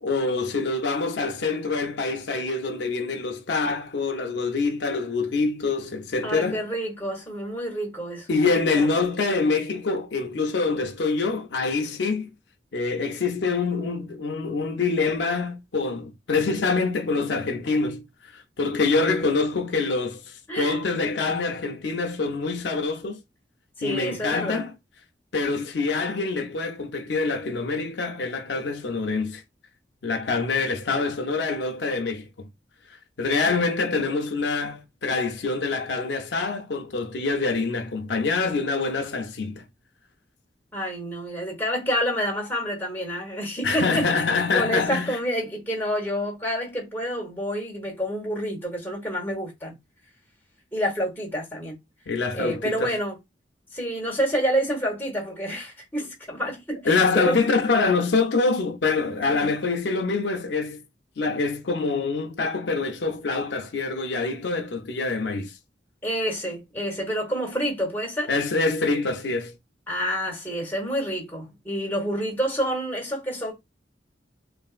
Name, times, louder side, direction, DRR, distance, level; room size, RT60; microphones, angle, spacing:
voice 1, 0.0-6.6 8.3-12.3 12.7-23.2 23.8-24.7 25.3-29.4 30.0-32.5 32.9-39.6 43.6-45.2 52.1-52.9 56.8-60.8 61.2-65.6 68.3-69.5, left 4 dB, 75° left, 0.5 m, -25 dB
voice 2, 6.2-8.9 20.5-20.8 23.8-24.6 40.7-44.1 44.5-49.8 50.7-51.8 52.3-53.2 53.7-57.4 59.2-59.5 66.0-68.3 69.9-73.5, equal, 10° left, 1.1 m, -28 dB
3.3 x 2.5 x 2.4 m
head